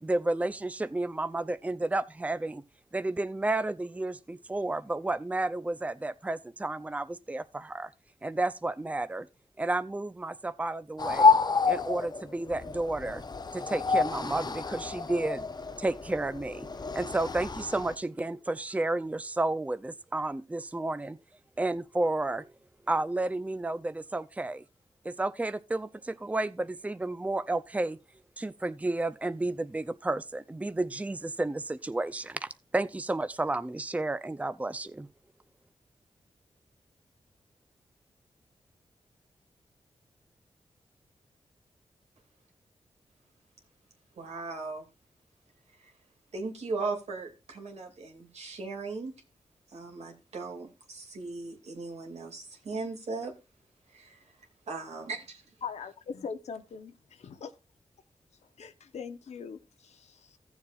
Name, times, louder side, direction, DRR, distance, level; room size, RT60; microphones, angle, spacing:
voice 1, 0.0-2.6 2.9-7.9 8.2-9.3 9.6-11.4 11.7-13.2 13.5-15.5 15.8-16.7 16.9-21.2 21.6-22.5 22.9-24.6 25.0-28.0 28.4-35.1, right 2 dB, 15° right, 0.5 m, -31 dB
sound 1, 11.0-18.0, left 4 dB, 40° left, 0.7 m, -28 dB
voice 2, 44.2-44.8 45.8-45.9 46.3-49.1 49.7-53.3 54.7-55.4, right 3 dB, 80° right, 2.4 m, -37 dB
voice 3, 55.6-57.5 58.6-60.4, left 6 dB, 90° left, 0.9 m, -41 dB
15.5 x 7.1 x 2.4 m
cardioid pair, 70°, 11 cm